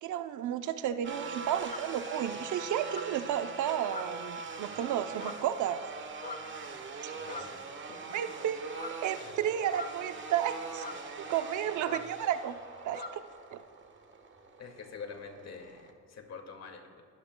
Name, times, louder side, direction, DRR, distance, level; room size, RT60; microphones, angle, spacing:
voice 1, 0.0-5.8 7.0-7.1 8.1-8.6 9.0-10.8 11.3-12.6 12.8-13.2 13.5-13.6, right 10 dB, 75° right, 10 dB, 0.7 m, -32 dB
sound 1, 1.0-15.9, right 4 dB, 40° right, 1.3 m, -42 dB
sound 2, 1.7-2.0 2.8-3.2 3.8-4.4 5.1-5.5 6.1-6.6 7.2-7.6 8.7-9.1 9.7-10.2 10.7-11.1 11.8-12.1 12.4-12.6 12.9-13.2, left 3 dB, 35° left, 0.9 m, -44 dB
voice 2, 7.1-8.0 9.3-9.4 14.6-17.0, left 5 dB, 60° left, 3 dB, 2.2 m, -46 dB
20.5 x 12.5 x 2.3 m, 2.3 s
cardioid pair, 90°, 30 cm